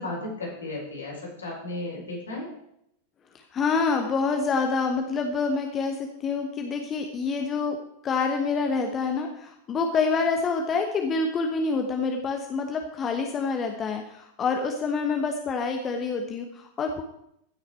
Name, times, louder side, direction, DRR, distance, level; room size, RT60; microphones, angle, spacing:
voice 1, 0.0-2.5, left 2 dB, 75° left, -2 dB, 4.5 m, -34 dB
voice 2, 3.3-17.0, left 4 dB, 25° left, 4 dB, 1.0 m, -27 dB
15.5 x 6.4 x 4.5 m, 0.78 s
figure-of-eight pair, 90°, 0 cm